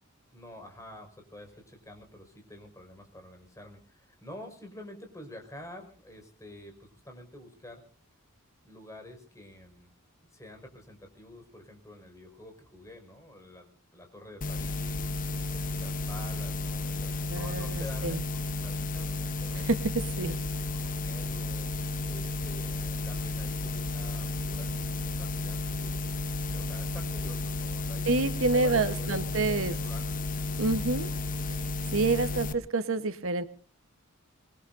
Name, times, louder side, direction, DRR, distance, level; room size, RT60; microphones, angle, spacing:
voice 1, 0.3-7.8 8.7-9.9 10.3-19.7 20.2-21.7 22.1-28.0 28.5-30.3 32.1-32.7, left 1 dB, 15° left, 4 dB, 5.3 m, -48 dB
sound 1, 14.4-32.5, left 2 dB, 40° left, 0.9 m, -33 dB
voice 2, 17.3-18.2 19.5-20.4 28.1-29.7 30.6-31.1 31.9-33.4, right 3 dB, 65° right, 11 dB, 1.2 m, -28 dB
25.0 x 22.0 x 2.6 m, 0.40 s
head